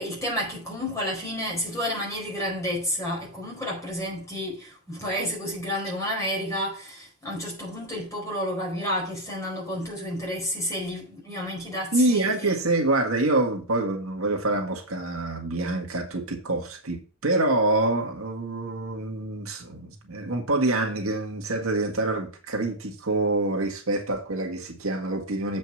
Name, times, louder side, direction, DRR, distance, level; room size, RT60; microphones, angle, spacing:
voice 1, 0.0-12.5, equal, 15° left, 4.7 m, -30 dB
voice 2, 11.9-25.6, right 2 dB, 70° right, 1.8 m, -26 dB
7.8 x 5.2 x 6.0 m
head